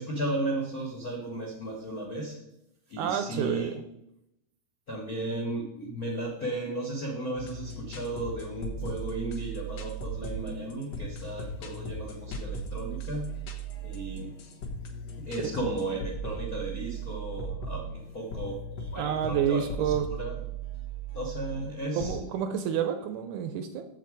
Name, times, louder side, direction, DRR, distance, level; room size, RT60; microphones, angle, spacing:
voice 1, 0.0-2.4 2.9-3.7 4.9-13.3 13.8-14.3 15.2-20.4 21.1-22.2, right 1 dB, 90° left, -2 dB, 0.8 m, -35 dB
voice 2, 3.0-3.8 19.0-20.1 22.0-23.9, right 8 dB, 80° right, 8 dB, 1.8 m, -29 dB
sound 1, 7.4-22.1, right 3 dB, 60° left, 2.0 m, -38 dB
7.6 x 7.6 x 4.6 m, 0.84 s
omnidirectional pair, 3.9 m